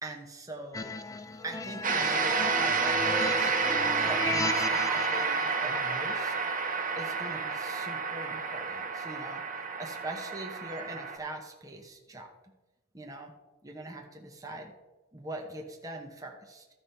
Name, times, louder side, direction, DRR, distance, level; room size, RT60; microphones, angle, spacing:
voice 1, 0.0-1.0 1.4-3.5 4.0-6.3 7.0-12.3 12.9-13.3 13.6-14.7 15.1-16.6, right 1 dB, 15° right, 1 dB, 0.9 m, -42 dB
sound 1, 0.7-5.2, left 3 dB, 15° left, 0.4 m, -35 dB
sound 2, 1.8-11.2, right 5 dB, 40° right, 1.2 m, -30 dB
13.0 x 4.9 x 5.5 m, 1.1 s
head